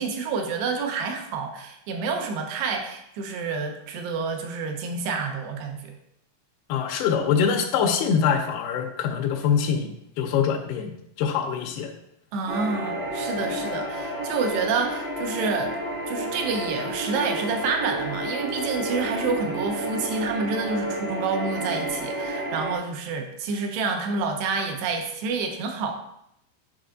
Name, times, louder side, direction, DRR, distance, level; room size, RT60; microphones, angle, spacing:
voice 1, 0.0-5.9 12.3-15.7 16.1-25.9, right 4 dB, 80° right, 4 dB, 2.9 m, -28 dB
voice 2, 6.7-9.9 10.2-10.9 11.2-11.9, left 7 dB, 85° left, 1 dB, 2.5 m, -24 dB
sound 1, 12.5-22.8, right 1 dB, 45° right, 1.1 m, -31 dB
10.0 x 5.5 x 2.5 m, 0.79 s
omnidirectional pair, 4.8 m